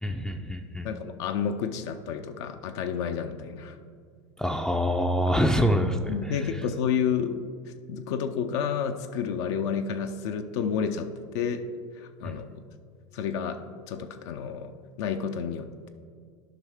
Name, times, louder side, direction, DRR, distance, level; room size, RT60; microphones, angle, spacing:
voice 1, 0.0-0.9 4.4-6.1 12.2-12.3, equal, 5° left, 2 dB, 0.5 m, -25 dB
voice 2, 0.8-3.8 5.3-5.4 6.1-11.1 11.3-11.6 11.9-12.5 13.1-13.6 13.9-15.9, left 7 dB, 60° left, 6 dB, 0.6 m, -30 dB
11.5 x 5.4 x 3.5 m, 2.1 s
hypercardioid pair, 85°, 16 cm